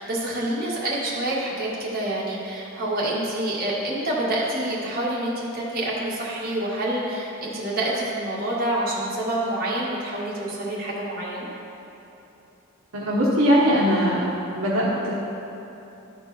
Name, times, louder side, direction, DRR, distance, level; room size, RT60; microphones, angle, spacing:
voice 1, 0.0-11.5, right 1 dB, 45° right, -6 dB, 1.8 m, -27 dB
voice 2, 12.9-14.2 14.5-15.1, equal, 80° right, -5 dB, 1.1 m, -20 dB
12.0 x 4.4 x 4.3 m, 2.9 s
head